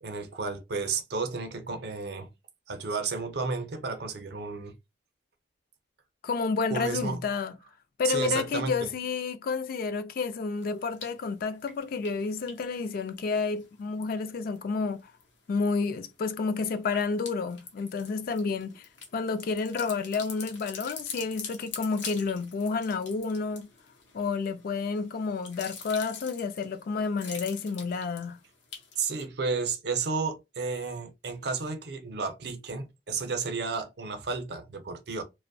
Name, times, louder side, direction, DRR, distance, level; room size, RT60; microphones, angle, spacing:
voice 1, 0.0-2.3 2.7-4.7 6.7-7.2 8.0-8.9 29.0-35.2, right 4 dB, 65° right, 0.6 m, -32 dB
voice 2, 6.2-7.5 8.0-15.1 15.5-18.8 19.1-23.7 24.1-28.4, left 4 dB, 55° left, 0.3 m, -30 dB
sound 1, 10.6-11.3 11.6-14.6 14.9-15.5 15.9-29.2, left 5 dB, 85° left, 0.7 m, -45 dB
2.5 x 2.0 x 2.5 m
head